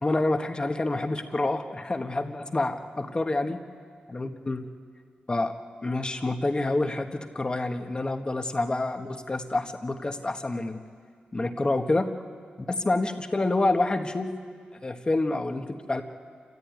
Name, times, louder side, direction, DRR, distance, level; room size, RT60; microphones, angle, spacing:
voice 1, 0.0-3.6 4.1-4.7 5.3-5.5 5.8-10.8 11.3-12.1 12.7-14.3 14.8-16.0, left 2 dB, 30° left, 6 dB, 1.5 m, -27 dB
29.0 x 14.0 x 9.3 m, 2.1 s
cardioid pair, 85°, 3 cm